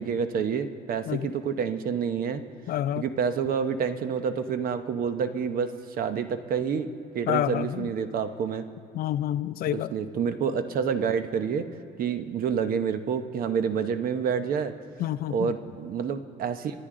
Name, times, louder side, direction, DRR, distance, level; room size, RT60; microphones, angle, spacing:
voice 1, 0.0-2.4 3.0-6.9 7.1-8.7 9.7-11.7 12.0-14.7 15.3-16.9, right 6 dB, 60° right, 10 dB, 0.9 m, -28 dB
voice 2, 2.7-3.0 7.3-7.9 8.9-9.9 15.0-15.5, left 12 dB, 60° left, 14 dB, 0.4 m, -28 dB
28.0 x 9.7 x 3.8 m, 2.7 s
cardioid pair, 110°, 17 cm